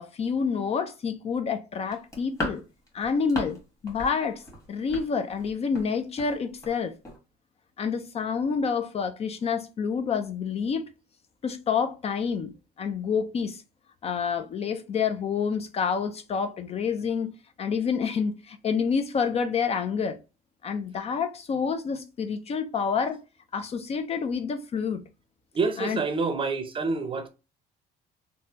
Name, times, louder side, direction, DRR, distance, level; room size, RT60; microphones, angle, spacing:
voice 1, 0.0-2.6 2.9-4.4 4.7-6.9 7.8-10.9 11.4-13.6 14.0-20.2 20.6-23.2 23.5-25.0 25.8-26.0, left 6 dB, 40° left, 0.4 m, -28 dB
sound 1, 1.9-3.6 3.9-4.1 4.4-5.9 6.2-6.3 6.6-6.8 7.0-7.2, left 1 dB, 20° left, 1.4 m, -36 dB
voice 2, 25.5-27.3, right 4 dB, 30° right, 0.6 m, -27 dB
3.3 x 2.1 x 2.8 m
cardioid pair, 110°, 17 cm